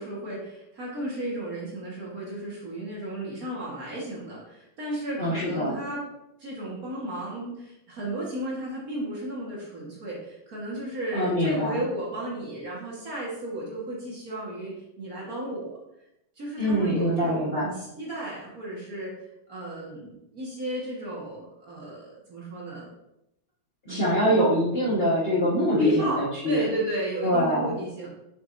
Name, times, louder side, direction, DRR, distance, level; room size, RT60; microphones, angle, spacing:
voice 1, 0.0-6.0 6.4-15.7 16.4-22.9 23.9-24.4 25.8-28.1, right 1 dB, 45° right, -5 dB, 1.9 m, -34 dB
voice 2, 5.2-5.7 11.1-11.8 16.6-17.7 23.8-26.6 27.2-27.7, equal, 30° left, -8 dB, 1.4 m, -24 dB
6.9 x 5.9 x 2.6 m, 0.86 s
omnidirectional pair, 2.2 m